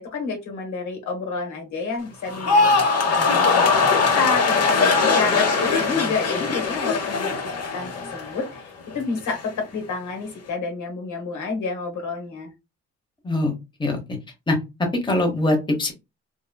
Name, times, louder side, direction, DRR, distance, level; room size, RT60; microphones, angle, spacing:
voice 1, 0.0-2.7 3.1-8.7 8.9-12.5, left 4 dB, 70° left, 2 dB, 1.3 m, -29 dB
sound 1, 2.3-8.6 8.9-9.4, left 4 dB, 55° left, 1.1 m, -21 dB
voice 2, 14.5-15.9, left 1 dB, 15° left, 2 dB, 1.0 m, -22 dB
3.7 x 2.3 x 2.2 m, 0.24 s
cardioid pair, 90°, 30 cm